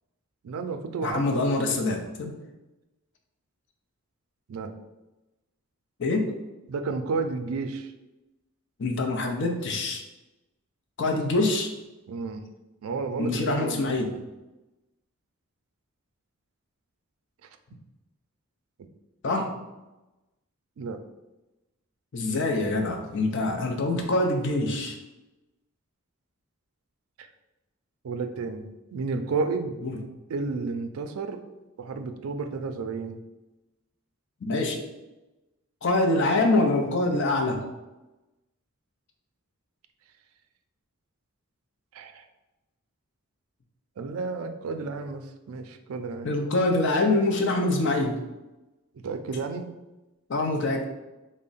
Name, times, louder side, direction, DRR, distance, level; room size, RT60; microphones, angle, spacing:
voice 1, 0.4-1.5 4.5-4.7 6.7-7.9 12.1-12.4 12.8-13.9 20.8-21.0 27.2-27.3 28.0-29.8 30.3-31.4 31.8-33.2 41.9-42.3 44.0-46.3 49.0-49.6, right 4 dB, 75° right, 7 dB, 0.4 m, -32 dB
voice 2, 1.0-2.3 6.0-6.3 8.8-10.0 11.0-11.7 13.2-14.1 19.2-19.6 22.1-25.0 29.8-29.9 34.4-34.8 35.8-37.6 46.2-48.2 50.3-50.9, left 2 dB, 55° left, 3 dB, 0.5 m, -25 dB
3.5 x 2.1 x 3.9 m, 1.0 s
head